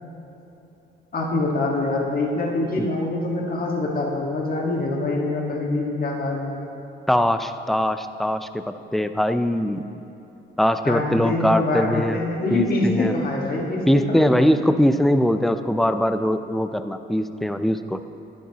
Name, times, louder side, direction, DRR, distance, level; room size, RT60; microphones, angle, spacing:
voice 1, 1.1-6.5 10.8-14.5, left 2 dB, 45° left, -1 dB, 1.6 m, -25 dB
voice 2, 7.1-8.6 8.9-9.8 10.6-12.2 12.5-13.2 13.9-18.0, equal, ahead, 10 dB, 0.4 m, -21 dB
10.5 x 10.5 x 2.9 m, 2.9 s
cardioid pair, 90°, 20 cm